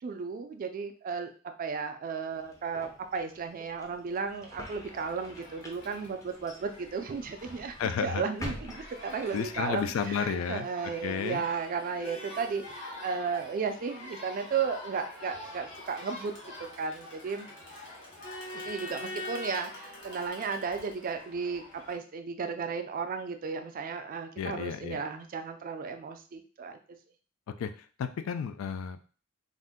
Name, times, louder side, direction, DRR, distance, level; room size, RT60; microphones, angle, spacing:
voice 1, 0.0-7.7 8.0-16.3 16.6-17.5 18.5-26.8, right 5 dB, 45° right, 7 dB, 0.3 m, -34 dB
sound 1, 2.3-9.8, left 1 dB, 15° left, 0.5 m, -47 dB
Crowd, 4.8-21.9, left 1 dB, 65° left, 1.0 m, -45 dB
voice 2, 7.8-8.2 9.3-10.7 11.0-11.4 24.4-25.0 27.6-27.7 28.0-29.0, left 7 dB, 80° left, 10 dB, 0.3 m, -32 dB
2.5 x 2.1 x 3.5 m, 0.40 s
head